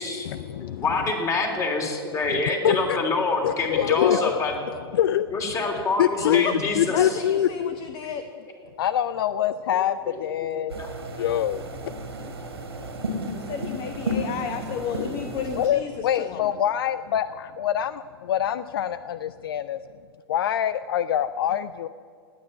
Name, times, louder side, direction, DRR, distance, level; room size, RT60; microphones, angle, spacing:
voice 1, 0.2-0.9 2.3-3.0 3.4-4.4 4.9-5.4 6.0-6.5 6.7-7.9 8.8-10.8 11.1-11.6 14.9-15.0 15.5-19.8 20.3-21.9, left 10 dB, 65° left, 15 dB, 0.5 m, -25 dB
voice 2, 0.8-4.5 5.3-7.2 10.1-10.2 10.5-10.9, left 3 dB, 25° left, 3 dB, 3.3 m, -26 dB
voice 3, 6.2-6.5 6.9-8.3 13.5-15.9 16.2-16.4, left 8 dB, 40° left, 9 dB, 1.0 m, -32 dB
sound 1, 10.7-15.7, equal, 80° right, 2.8 m, -33 dB
19.0 x 8.9 x 8.6 m, 2.3 s
figure-of-eight pair, 95°, 13 cm